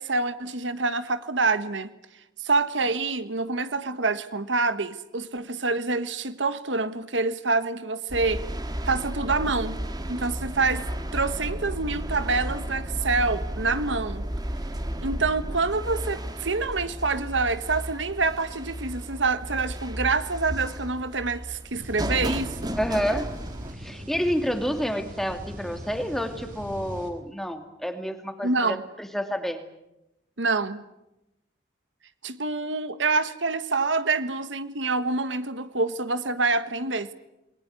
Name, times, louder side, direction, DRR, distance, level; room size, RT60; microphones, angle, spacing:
voice 1, 0.0-1.9 2.4-8.4 8.8-9.8 10.1-10.9 11.1-14.3 15.0-22.8 28.4-28.8 30.4-30.8 32.2-37.1, right 3 dB, 85° right, 1.5 m, -26 dB
sound 1, 8.1-23.7, equal, 20° right, 1.8 m, -33 dB
sound 2, 21.7-27.1, equal, 45° right, 5.0 m, -41 dB
voice 2, 22.8-23.3 23.7-29.6, equal, ahead, 2.2 m, -29 dB
28.0 x 21.0 x 9.7 m
head